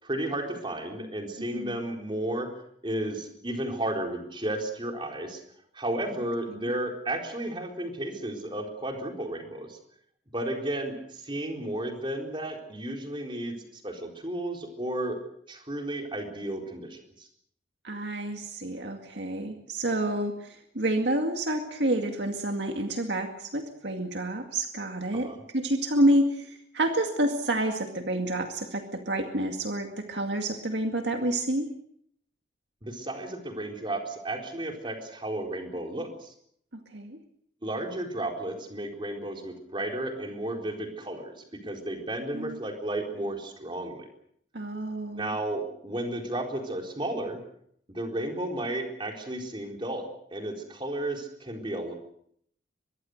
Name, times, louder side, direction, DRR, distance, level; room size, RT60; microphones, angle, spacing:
voice 1, 0.0-2.5 2.8-5.4 5.7-9.8 10.3-15.2 15.5-17.3 25.1-25.4 32.8-36.3 37.6-44.1 45.1-47.4 47.9-51.9, right 1 dB, 25° right, 2 dB, 4.2 m, -33 dB
voice 2, 1.4-1.8 6.5-6.7 17.8-31.7 36.9-37.2 42.3-42.6 44.5-45.4, right 1 dB, 65° right, 4 dB, 2.1 m, -29 dB
24.0 x 21.5 x 6.5 m, 0.68 s
head